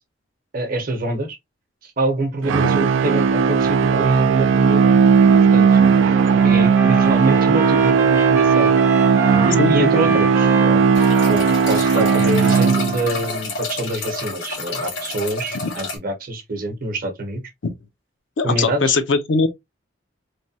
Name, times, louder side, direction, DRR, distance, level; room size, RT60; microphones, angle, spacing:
voice 1, 0.5-1.4 1.8-5.0 5.5-5.8 6.4-8.7 9.4-10.8 11.3-17.4 18.4-19.0, right 2 dB, 50° right, 0.8 m, -25 dB
sound 1, 2.4-13.2, right 6 dB, 90° right, 0.4 m, -16 dB
Trumpet, 6.3-13.4, right 3 dB, 15° right, 0.5 m, -29 dB
voice 2, 9.6-9.9 15.6-15.7 17.6-17.7 18.4-19.5, left 4 dB, 75° left, 0.5 m, -20 dB
sound 2, 10.9-16.0, left 3 dB, 90° left, 1.5 m, -30 dB
3.2 x 2.2 x 2.6 m
head